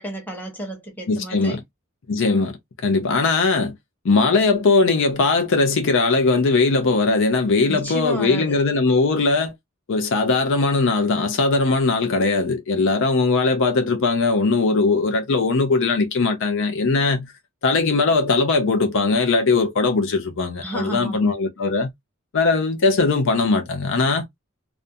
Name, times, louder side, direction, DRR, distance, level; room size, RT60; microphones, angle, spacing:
voice 1, 0.0-1.6 7.7-8.6 20.6-21.3, equal, 10° left, 0.9 m, -31 dB
voice 2, 1.1-1.6 2.1-2.6 2.8-3.7 4.0-9.5 9.9-17.3 17.6-21.9 22.3-24.2, left 3 dB, 60° left, 0.5 m, -20 dB
2.5 x 2.2 x 2.6 m
head